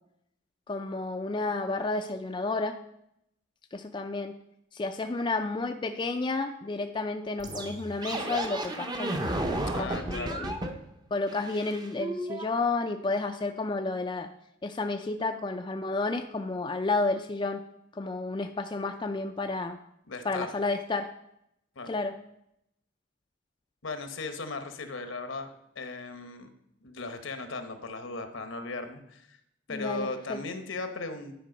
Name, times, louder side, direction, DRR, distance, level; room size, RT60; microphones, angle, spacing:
voice 1, 0.7-2.8 3.7-4.3 4.7-10.6 11.1-14.3 14.6-17.6 17.9-19.8 20.2-21.1 21.9-22.1 29.7-30.4, left 3 dB, 25° left, 5 dB, 0.3 m, -31 dB
sound 1, 7.4-10.8 11.3-12.4, right 1 dB, 20° right, 0.6 m, -33 dB
voice 2, 9.7-10.4 20.1-20.5 21.8-21.9 23.8-26.5 26.8-29.4 29.7-31.3, left 3 dB, 75° left, 7 dB, 0.9 m, -37 dB
10.5 x 4.5 x 5.2 m, 0.78 s
head